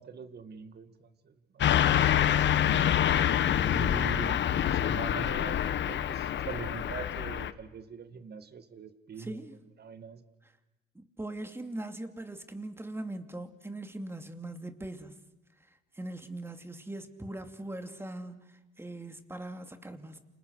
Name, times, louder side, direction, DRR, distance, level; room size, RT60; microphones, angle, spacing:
voice 1, 0.0-2.1 3.6-9.5 9.8-10.2, right 5 dB, 55° right, 10 dB, 2.2 m, -42 dB
Car passing by / Truck, 1.6-7.5, left 10 dB, 65° left, 1.2 m, -26 dB
voice 2, 9.2-9.6 10.9-15.2 15.9-20.2, right 1 dB, 10° right, 7 dB, 2.7 m, -41 dB
29.0 x 27.0 x 6.5 m, 0.98 s
cardioid pair, 90°, 20 cm